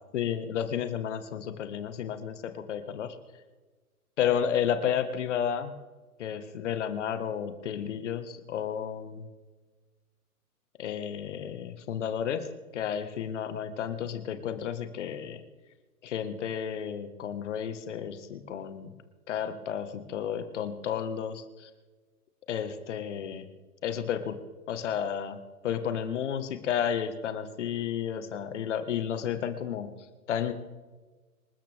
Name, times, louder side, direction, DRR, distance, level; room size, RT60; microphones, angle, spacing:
voice 1, 0.1-3.2 4.2-5.7 6.2-9.3 10.8-12.5 12.7-15.4 16.0-18.9 19.3-21.7 22.5-23.5 23.8-24.4 24.7-25.4 25.6-29.9 30.3-30.5, left 8 dB, 50° left, 9 dB, 1.6 m, -32 dB
27.0 x 13.5 x 3.6 m, 1.3 s
hypercardioid pair, 125°, 44 cm